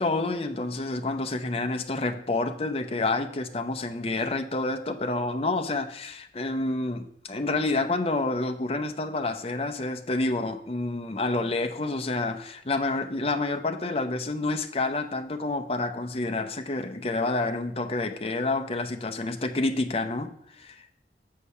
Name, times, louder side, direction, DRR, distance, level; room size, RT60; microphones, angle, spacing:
voice 1, 0.0-20.9, left 2 dB, 35° left, 0.7 m, -28 dB
6.7 x 5.6 x 6.7 m
head